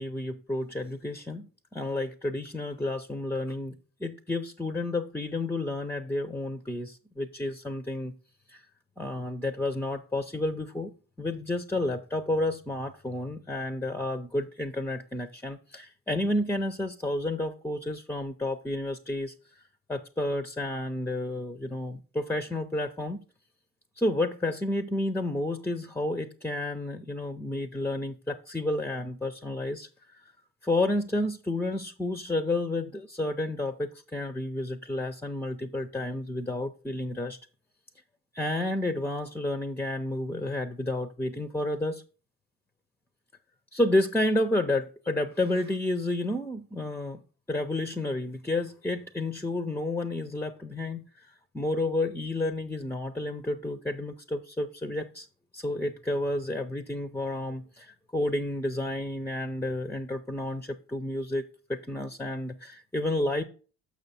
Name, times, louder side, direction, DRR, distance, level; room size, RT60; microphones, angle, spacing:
voice 1, 0.0-8.2 8.5-8.6 9.0-19.3 19.9-23.2 24.0-29.9 30.6-37.4 38.3-42.0 43.7-47.2 47.5-55.3 55.5-63.4, left 1 dB, 5° left, 0.4 m, -31 dB
6.3 x 5.8 x 4.1 m
hypercardioid pair, 55°, 44 cm